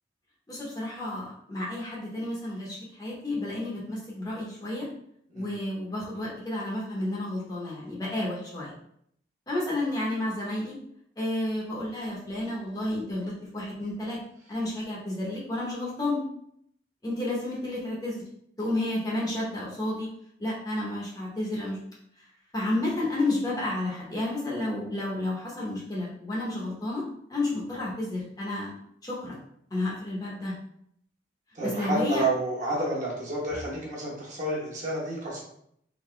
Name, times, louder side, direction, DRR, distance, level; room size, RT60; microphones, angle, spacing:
voice 1, 0.5-4.9 5.3-8.7 9.5-10.8 11.2-14.2 14.5-16.2 17.0-18.2 18.6-20.1 20.4-21.8 22.5-27.0 27.3-28.7 29.0-29.4 29.7-30.5 31.6-32.3, left 1 dB, 20° left, -5 dB, 1.0 m, -31 dB
voice 2, 31.5-35.4, right 2 dB, 40° right, -4 dB, 1.2 m, -30 dB
3.8 x 2.8 x 3.2 m, 0.69 s
head